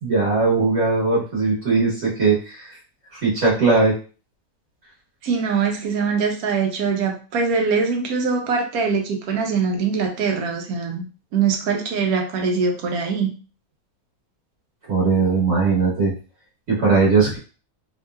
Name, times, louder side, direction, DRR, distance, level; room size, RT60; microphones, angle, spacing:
voice 1, 0.0-2.8 3.1-3.9 14.9-16.1 16.7-17.4, right 4 dB, 55° right, -6 dB, 1.4 m, -19 dB
voice 2, 5.2-11.0 11.3-13.3, right 5 dB, 85° right, 3 dB, 1.2 m, -22 dB
3.0 x 2.8 x 2.2 m, 0.36 s
omnidirectional pair, 1.5 m